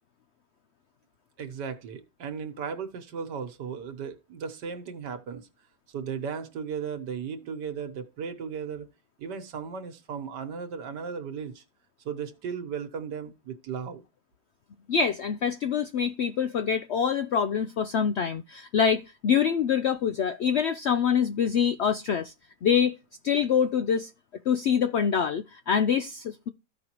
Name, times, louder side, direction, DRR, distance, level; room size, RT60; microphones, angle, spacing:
voice 1, 1.4-5.5 5.9-8.9 9.2-11.6 12.0-14.0, right 6 dB, 85° right, 1.6 m, -36 dB
voice 2, 14.9-22.3 22.6-23.0 23.2-24.1 24.5-26.5, left 7 dB, 80° left, 0.6 m, -25 dB
14.5 x 5.1 x 2.9 m
omnidirectional pair, 1.8 m